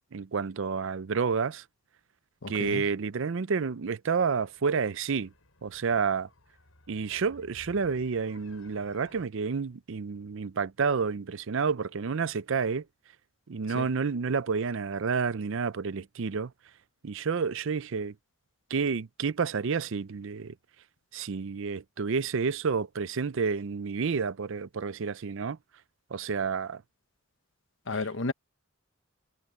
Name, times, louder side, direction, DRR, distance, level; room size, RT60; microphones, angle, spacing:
voice 1, 0.1-1.6 2.5-5.3 5.6-6.3 6.9-12.8 13.5-16.5 17.0-18.1 18.7-20.5 21.1-25.6 26.1-26.8, right 5 dB, 65° right, 0.5 m, -30 dB
voice 2, 2.4-2.9 13.7-13.9 27.9-28.3, left 3 dB, 65° left, 1.1 m, -33 dB
sound 1, 4.2-9.2, left 1 dB, 80° left, 5.1 m, -57 dB
head